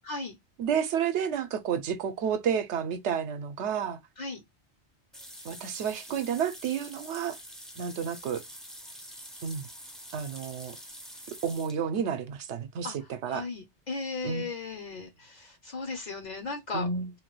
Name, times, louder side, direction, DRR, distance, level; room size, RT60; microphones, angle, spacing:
voice 1, 0.1-0.4 4.2-4.4 12.8-13.0 13.3-16.9, left 3 dB, 50° left, 0.6 m, -36 dB
voice 2, 0.6-4.0 5.4-7.4 7.8-8.4 9.4-9.7 10.1-10.8 11.3-13.5 14.2-14.5 16.7-17.1, right 7 dB, 75° right, 0.9 m, -31 dB
sound 1, 5.1-11.8, equal, ahead, 0.3 m, -46 dB
3.1 x 2.2 x 3.0 m
omnidirectional pair, 1.2 m